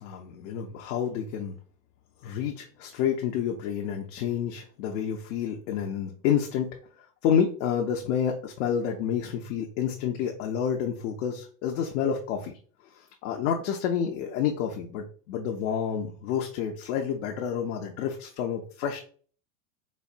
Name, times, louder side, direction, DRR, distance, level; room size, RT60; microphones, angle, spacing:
voice 1, 0.0-1.5 2.2-6.7 7.2-12.6 12.9-19.0, left 8 dB, 60° left, 2 dB, 0.6 m, -29 dB
4.2 x 2.3 x 2.5 m, 0.44 s
supercardioid pair, 135°, 45 cm